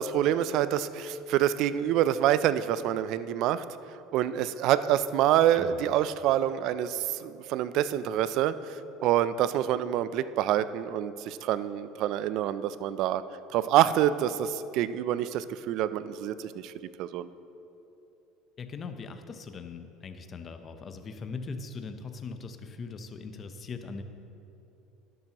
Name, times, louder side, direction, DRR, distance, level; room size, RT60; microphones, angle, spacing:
voice 1, 0.0-3.6 4.1-13.2 13.5-16.7 17.0-17.3, right 11 dB, 60° right, 14 dB, 0.4 m, -26 dB
voice 2, 18.6-24.0, left 4 dB, 35° left, 8 dB, 0.7 m, -40 dB
11.5 x 11.0 x 3.0 m, 2.9 s
supercardioid pair, 115°, 0 cm